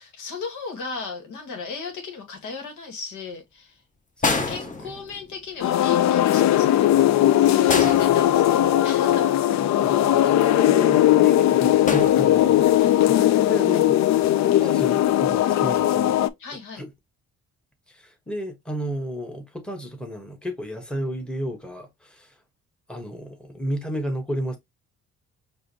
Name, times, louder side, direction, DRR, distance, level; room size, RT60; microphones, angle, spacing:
voice 1, 0.0-3.8 4.5-9.4 12.7-13.0 16.4-16.8, left 4 dB, 80° left, 1.6 m, -36 dB
Shed Kicking, 4.2-5.5 7.7-8.9 11.9-12.8 14.0-14.3, left 3 dB, 25° left, 0.9 m, -28 dB
voice 2, 4.2-4.9 9.7-12.7 13.1-14.0 14.6-16.1 16.8-16.9 17.9-22.4 22.9-24.6, equal, 5° left, 1.3 m, -32 dB
sound 1, 5.6-16.3, left 12 dB, 65° left, 0.4 m, -19 dB
4.8 x 2.7 x 2.8 m
cardioid pair, 90°, 30 cm